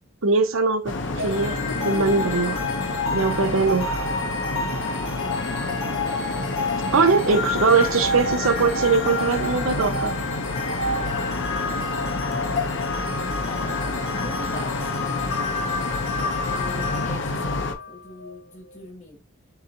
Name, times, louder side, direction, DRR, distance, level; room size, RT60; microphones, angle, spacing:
voice 1, 0.2-1.6 1.8-2.6 3.1-4.0 6.9-10.1, right 4 dB, 75° right, 0.7 m, -21 dB
sound 1, 0.9-17.7, left 2 dB, 60° left, 0.7 m, -29 dB
sound 2, 1.2-18.3, left 3 dB, 80° left, 1.7 m, -30 dB
voice 2, 13.5-14.7 16.5-19.2, left 2 dB, 35° left, 1.3 m, -41 dB
6.7 x 2.9 x 2.5 m
head